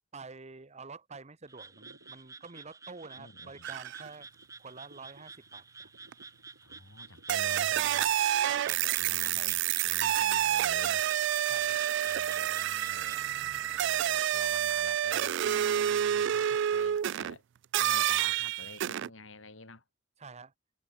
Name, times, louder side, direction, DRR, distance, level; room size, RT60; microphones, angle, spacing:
voice 1, 0.1-4.3 4.6-5.9 8.5-9.6 11.4-11.9 20.2-20.5, right 4 dB, 35° right, 1.0 m, -48 dB
Frog, 1.5-13.2, right 4 dB, 15° right, 0.7 m, -51 dB
sound 1, 1.7-9.5, right 1 dB, 80° right, 6.0 m, -61 dB
voice 2, 3.2-3.7 6.6-8.1 9.0-11.1 12.0-17.4 17.8-19.8, left 2 dB, 70° left, 4.9 m, -50 dB
sound 2, 3.6-4.1 6.1-6.2 7.3-17.3 17.7-19.1, right 11 dB, 60° right, 0.3 m, -29 dB
head